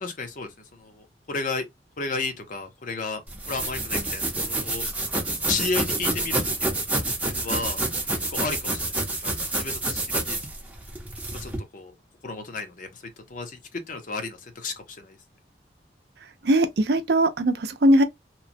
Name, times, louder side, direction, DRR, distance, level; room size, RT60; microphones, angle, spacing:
voice 1, 0.0-1.7 2.0-4.9 5.4-6.7 7.2-7.8 8.3-9.0 9.2-10.4 11.4-11.9 12.2-15.2, left 3 dB, 45° left, 0.6 m, -33 dB
sound 1, 3.3-11.6, right 2 dB, 10° right, 0.6 m, -28 dB
voice 2, 16.4-18.0, right 1 dB, 60° right, 0.5 m, -20 dB
3.0 x 2.1 x 2.5 m
head